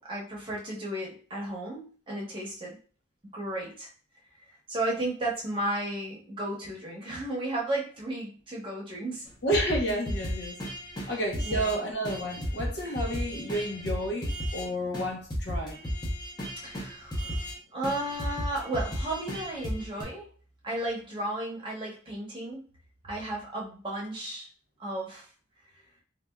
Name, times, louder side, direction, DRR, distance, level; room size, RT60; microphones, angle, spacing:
voice 1, 0.0-2.8 3.3-3.9 4.7-9.2 11.0-11.1 11.4-11.8 16.6-17.4 17.7-20.2 20.6-22.7 23.1-24.5 24.8-25.3, right 1 dB, 25° right, -3 dB, 0.9 m, -34 dB
voice 2, 9.4-10.6 11.1-15.8 17.2-17.4, equal, 65° left, 0 dB, 0.8 m, -31 dB
sound 1, 9.5-11.8 12.0-14.7 14.9-15.1 15.3-17.6 17.8-20.0, equal, 20° left, 0.7 m, -34 dB
3.3 x 2.4 x 2.2 m, 0.40 s
head